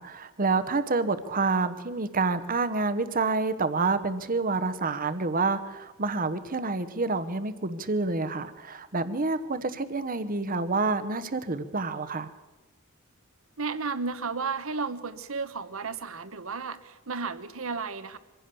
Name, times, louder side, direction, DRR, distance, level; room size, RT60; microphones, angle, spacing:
voice 1, 0.0-12.3, right 3 dB, 40° right, 12 dB, 1.1 m, -28 dB
voice 2, 13.6-18.2, right 4 dB, 65° right, 13 dB, 1.2 m, -33 dB
24.0 x 16.0 x 7.0 m, 1.2 s
head